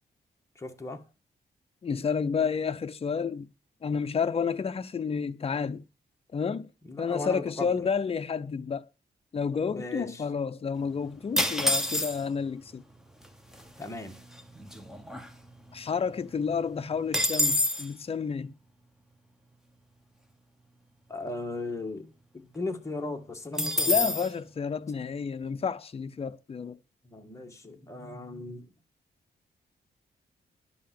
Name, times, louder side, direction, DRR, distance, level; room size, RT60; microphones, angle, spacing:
voice 1, 0.6-1.0 6.9-7.8 9.7-10.2 13.8-14.2 21.1-24.1 27.0-28.6, left 2 dB, 15° left, 1.6 m, -37 dB
voice 2, 1.8-3.5 3.8-5.9 6.3-6.7 7.0-8.9 9.3-12.8 15.7-18.5 23.9-26.8, left 6 dB, 35° left, 0.6 m, -30 dB
sound 1, 11.4-12.4 13.2-13.3 13.5-13.9 14.3-15.8 16.1-16.2 16.5-17.9 23.6-24.3, left 1 dB, 5° right, 1.2 m, -27 dB
11.0 x 5.6 x 7.5 m
wide cardioid pair, 125°, 17 cm